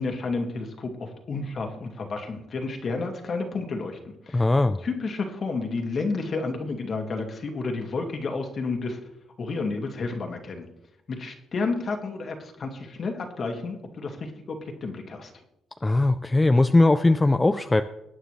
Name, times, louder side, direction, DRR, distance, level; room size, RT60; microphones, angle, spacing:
voice 1, 0.0-4.0 4.3-4.5 4.8-9.0 9.4-10.6 11.1-15.3, left 3 dB, 50° left, 3 dB, 2.3 m, -31 dB
voice 2, 4.3-4.8 15.8-17.8, left 2 dB, 20° left, 9 dB, 0.5 m, -19 dB
22.0 x 8.9 x 3.3 m, 0.87 s
cardioid pair, 90°, 0 cm